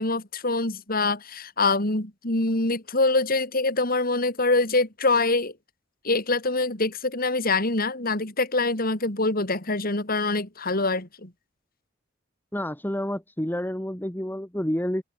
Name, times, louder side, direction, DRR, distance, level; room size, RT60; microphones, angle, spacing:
voice 1, 0.0-5.5 6.0-11.3, left 3 dB, 50° left, 4.4 m, -24 dB
voice 2, 12.5-15.0, equal, 10° left, 1.8 m, -29 dB
head